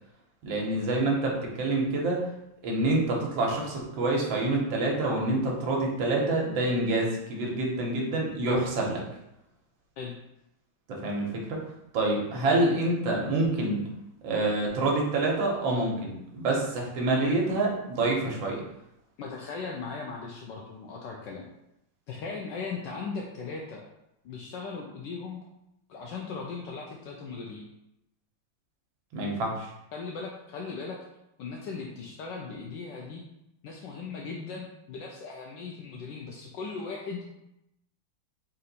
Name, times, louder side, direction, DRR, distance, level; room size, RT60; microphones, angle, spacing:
voice 1, 0.4-2.2 2.6-9.0 11.0-11.6 11.9-13.8 14.2-18.6 29.1-29.7, right 2 dB, 75° right, -1 dB, 1.6 m, -27 dB
voice 2, 19.2-21.5 22.1-23.8 24.2-25.4 25.9-27.7 29.9-31.0 31.4-33.2 33.6-37.2, left 4 dB, 75° left, -1 dB, 1.1 m, -38 dB
4.3 x 2.6 x 4.0 m, 0.85 s
omnidirectional pair, 2.2 m